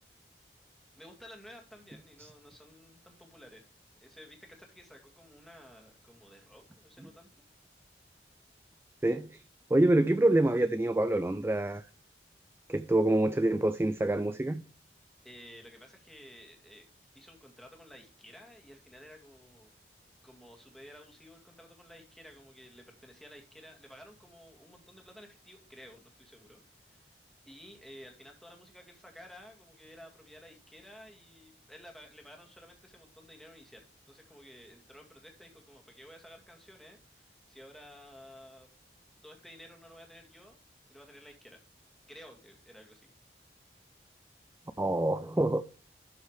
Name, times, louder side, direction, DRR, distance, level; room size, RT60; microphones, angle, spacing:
voice 1, 1.0-3.6 4.0-7.4 15.2-16.9 17.2-19.7 20.2-27.1 27.5-38.7 39.2-40.6 40.9-41.6 42.1-43.1, equal, ahead, 2.1 m, -53 dB
voice 2, 9.0-9.4 9.7-11.9 12.7-14.6 44.8-45.6, right 1 dB, 15° right, 0.3 m, -26 dB
12.0 x 5.4 x 3.2 m
head